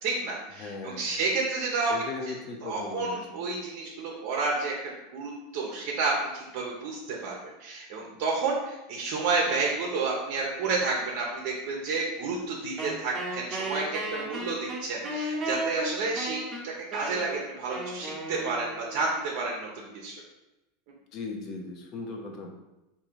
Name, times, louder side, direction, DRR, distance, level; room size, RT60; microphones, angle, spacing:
voice 1, 0.0-1.9 2.6-7.3 7.6-20.1, right 3 dB, 60° right, -2 dB, 0.8 m, -30 dB
voice 2, 0.6-1.2 1.9-3.4 8.0-8.1 21.1-22.5, left 3 dB, 40° left, 2 dB, 0.7 m, -38 dB
Wind instrument woodwind instrument, 12.8-19.1, right 1 dB, 25° right, 1.0 m, -35 dB
3.7 x 2.8 x 4.6 m, 0.99 s
supercardioid pair, 145°, 0 cm